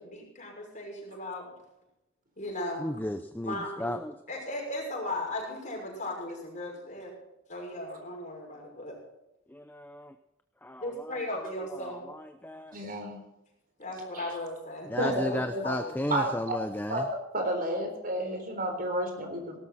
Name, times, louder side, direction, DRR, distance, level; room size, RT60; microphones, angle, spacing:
voice 1, 0.0-1.5 2.4-2.9 3.4-3.9 4.3-7.1 7.5-9.0 10.8-12.0 13.8-16.0, left 1 dB, 40° left, -1 dB, 6.3 m, -36 dB
voice 2, 2.8-4.2 9.5-10.1 10.6-12.8 14.8-17.0, left 1 dB, 10° left, 8 dB, 0.7 m, -35 dB
voice 3, 12.7-13.2 14.1-14.4 15.0-15.6 16.1-16.6 16.9-17.1 17.3-19.6, right 1 dB, 45° right, 4 dB, 4.0 m, -31 dB
18.0 x 13.0 x 4.2 m, 0.90 s
head